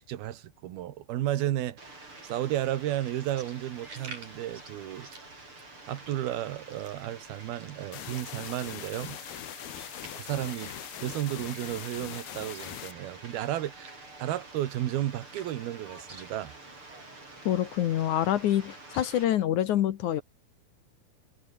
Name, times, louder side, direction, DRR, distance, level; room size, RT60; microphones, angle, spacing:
voice 1, 0.0-1.9 2.2-5.1 5.9-9.2 10.2-16.5, right 13 dB, 90° right, 3.3 m, -33 dB
Fowl, 1.8-19.3, right 3 dB, 35° right, 8.0 m, -48 dB
sound 1, 2.9-13.2 13.5-17.5, right 3 dB, 50° right, 8.4 m, -53 dB
sound 2, 7.9-12.9, left 13 dB, 90° left, 3.3 m, -41 dB
voice 2, 17.5-20.2, left 12 dB, 65° left, 2.3 m, -26 dB
omnidirectional pair, 4.3 m